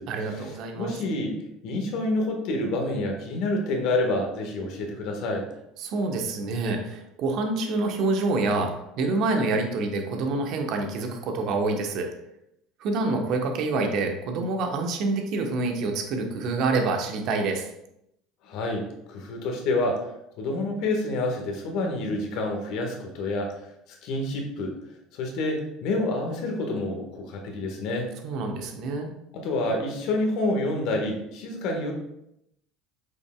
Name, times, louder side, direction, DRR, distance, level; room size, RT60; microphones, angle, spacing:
voice 1, 0.1-0.9 5.8-12.1 12.8-17.6 28.2-29.1, right 3 dB, 55° right, 3 dB, 1.2 m, -27 dB
voice 2, 0.8-1.4 1.6-5.5 18.4-20.1 20.4-23.6 23.9-24.7 25.1-28.1 29.3-31.9, left 2 dB, 60° left, 2 dB, 1.6 m, -28 dB
8.0 x 5.5 x 2.4 m, 0.81 s
hypercardioid pair, 70°, 0 cm